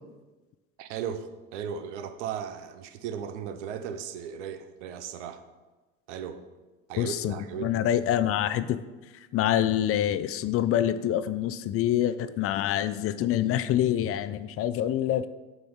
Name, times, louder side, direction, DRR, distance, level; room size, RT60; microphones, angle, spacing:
voice 1, 0.8-5.4 6.1-6.4 6.9-7.8, right 8 dB, 85° right, 10 dB, 0.6 m, -36 dB
voice 2, 7.0-8.8 9.3-15.3, left 11 dB, 40° left, 12 dB, 0.4 m, -26 dB
7.0 x 3.0 x 5.5 m, 1.2 s
hypercardioid pair, 80°, 35 cm